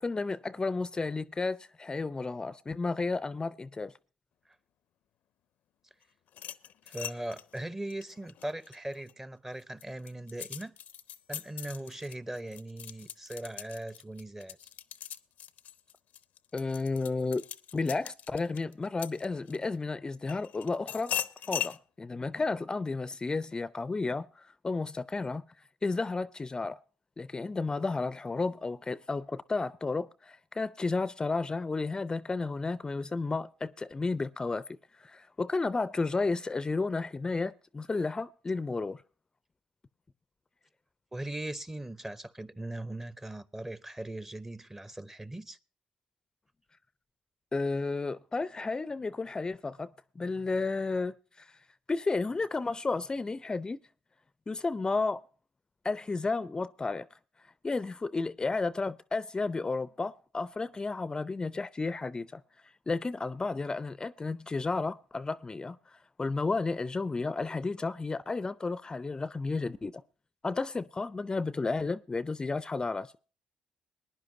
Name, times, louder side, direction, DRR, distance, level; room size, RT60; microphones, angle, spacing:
voice 1, 0.0-3.9 16.5-17.4 17.7-21.1 21.5-25.4 25.8-26.8 27.2-39.0 47.5-49.9 50.2-51.5 51.9-53.8 54.5-55.2 55.8-57.1 57.6-62.4 62.9-65.8 66.2-70.0 70.4-73.1, left 3 dB, 30° left, 0.5 m, -32 dB
sound 1, 6.3-9.1 9.6-19.7 20.3-21.8, left 10 dB, 75° left, 0.6 m, -40 dB
voice 2, 6.9-10.7 11.3-14.6 41.1-45.6, right 1 dB, 15° right, 0.8 m, -39 dB
21.0 x 10.0 x 2.7 m
supercardioid pair, 60°, 3 cm